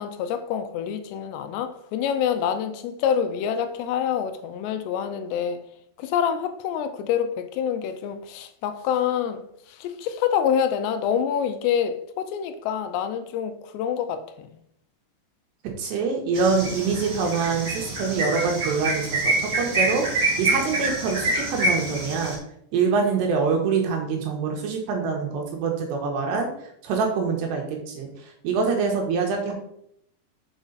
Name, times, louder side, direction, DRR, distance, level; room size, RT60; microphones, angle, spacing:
voice 1, 0.0-5.6 6.0-14.5, left 8 dB, 90° left, 2.9 m, -26 dB
voice 2, 15.8-20.0 20.4-22.4 22.7-26.5 26.8-28.1 28.4-29.5, right 5 dB, 85° right, 3.5 m, -25 dB
sound 1, 16.3-22.3, right 2 dB, 40° right, 2.1 m, -26 dB
7.2 x 4.9 x 4.0 m
omnidirectional pair, 4.8 m